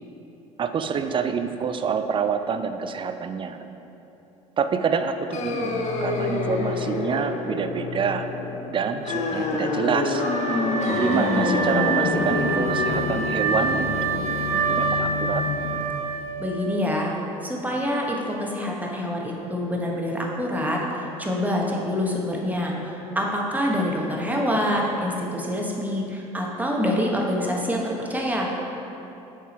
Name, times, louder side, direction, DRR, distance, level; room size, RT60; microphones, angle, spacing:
voice 1, 0.6-3.6 4.6-8.3 8.7-10.2 10.9-14.0 14.7-15.4, right 6 dB, 30° right, 9 dB, 0.4 m, -27 dB
sound 1, 5.3-15.8, left 3 dB, 40° left, 0.7 m, -27 dB
Wind instrument woodwind instrument, 10.1-17.1, right 5 dB, 90° right, 0.5 m, -27 dB
voice 2, 16.4-17.1 17.4-20.8 21.2-28.6, equal, 10° right, -1 dB, 1.2 m, -26 dB
6.7 x 4.8 x 4.4 m, 3.0 s
hypercardioid pair, 65°, 18 cm